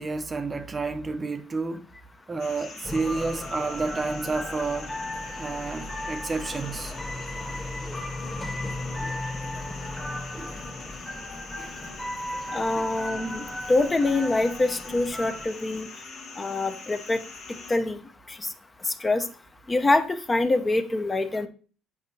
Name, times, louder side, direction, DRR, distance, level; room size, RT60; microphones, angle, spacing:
voice 1, 0.0-1.9 2.3-4.9 5.4-6.9 7.5-7.6 9.0-9.2 10.3-10.6 11.6-11.8 12.7-12.9, right 3 dB, 30° right, 0.6 m, -30 dB
sound 1, 2.4-17.8, left 4 dB, 70° left, 1.3 m, -43 dB
sound 2, 2.8-15.5, left 1 dB, 10° left, 1.2 m, -35 dB
voice 2, 12.5-15.9 16.4-17.2 17.7-18.0 18.3-18.5 18.8-19.3 19.7-21.5, left 2 dB, 25° left, 0.7 m, -25 dB
8.0 x 5.2 x 2.7 m
hypercardioid pair, 65°, 0 cm